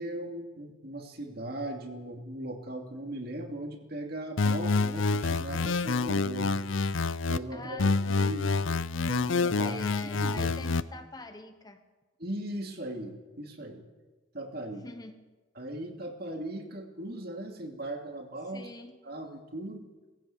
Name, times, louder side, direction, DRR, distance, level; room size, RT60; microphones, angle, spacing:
voice 1, 0.0-6.6 7.3-7.9 8.2-8.5 9.0-10.5 12.2-13.8 14.3-14.8 15.6-18.7 19.0-19.9, right 1 dB, 50° right, 3 dB, 2.6 m, -38 dB
sound 1, 4.4-7.4 7.8-10.8, left 4 dB, 70° left, 0.6 m, -27 dB
voice 2, 7.5-8.4 9.6-11.8 14.7-15.2 18.5-19.0, left 2 dB, 20° left, 7 dB, 1.1 m, -44 dB
19.0 x 15.5 x 9.1 m, 1.2 s
head